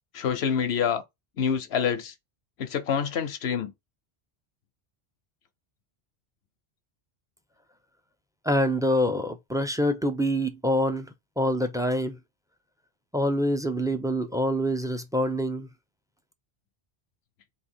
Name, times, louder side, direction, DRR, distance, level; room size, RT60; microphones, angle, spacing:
voice 1, 0.1-1.0 1.4-2.1 2.6-3.7, left 7 dB, 85° left, 1.1 m, -26 dB
voice 2, 8.4-12.2 13.1-15.7, equal, 5° right, 0.5 m, -26 dB
4.0 x 2.8 x 4.3 m
omnidirectional pair, 1.1 m